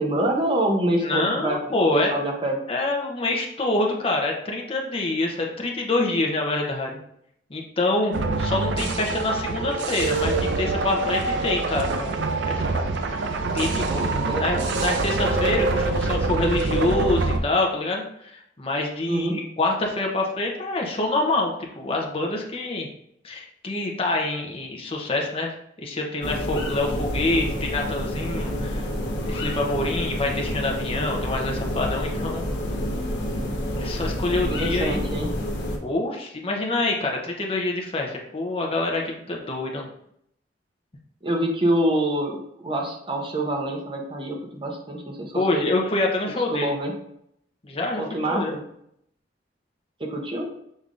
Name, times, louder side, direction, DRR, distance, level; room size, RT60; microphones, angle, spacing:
voice 1, 0.0-1.6 1.9-2.5 13.8-14.7 19.1-19.4 34.3-35.3 41.2-45.6 46.5-46.9 48.0-48.6 50.0-50.5, right 1 dB, 30° right, 1 dB, 0.8 m, -26 dB
voice 2, 1.0-2.1 2.7-7.0 7.5-12.1 12.5-13.3 13.5-14.0 14.4-22.9 23.2-28.8 29.3-32.4 33.8-35.0 35.8-39.9 45.3-46.7 47.6-48.5, left 2 dB, 30° left, 1 dB, 0.7 m, -26 dB
sound 1, 8.1-17.4, right 3 dB, 90° right, 0.5 m, -25 dB
sound 2, 26.2-35.8, equal, 85° left, 0.8 m, -28 dB
5.3 x 3.4 x 2.5 m, 0.73 s
head